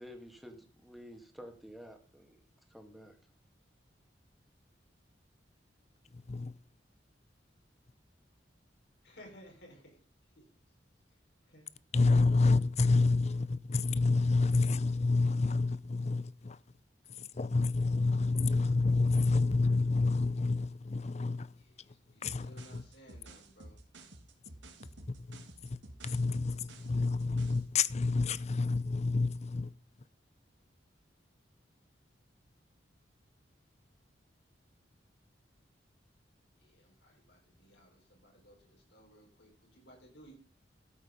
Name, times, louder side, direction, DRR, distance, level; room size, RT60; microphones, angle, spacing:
voice 1, 0.0-2.4 2.7-3.2, equal, ahead, 2.1 m, -50 dB
voice 2, 6.1-6.5 11.9-16.6 17.2-21.5 22.2-22.8 25.1-29.7, left 3 dB, 40° left, 0.6 m, -29 dB
voice 3, 9.0-10.0 10.3-10.7 11.1-11.2 11.5-11.7 21.6-23.8 36.6-40.4, equal, 70° left, 5.2 m, -58 dB
sound 1, 22.2-27.7, right 1 dB, 90° right, 2.5 m, -52 dB
13.0 x 8.3 x 5.2 m
head